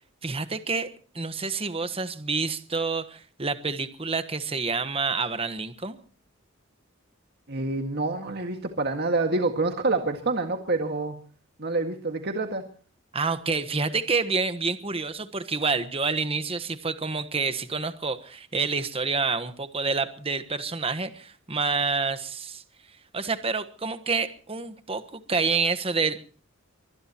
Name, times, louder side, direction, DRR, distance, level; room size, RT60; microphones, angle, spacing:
voice 1, 0.2-0.9 1.1-6.0 13.1-22.6 23.1-26.4, right 4 dB, 25° right, 10 dB, 1.3 m, -28 dB
voice 2, 7.5-11.2 11.6-12.6, right 3 dB, 50° right, 4 dB, 1.9 m, -27 dB
24.5 x 19.5 x 3.0 m, 0.40 s
head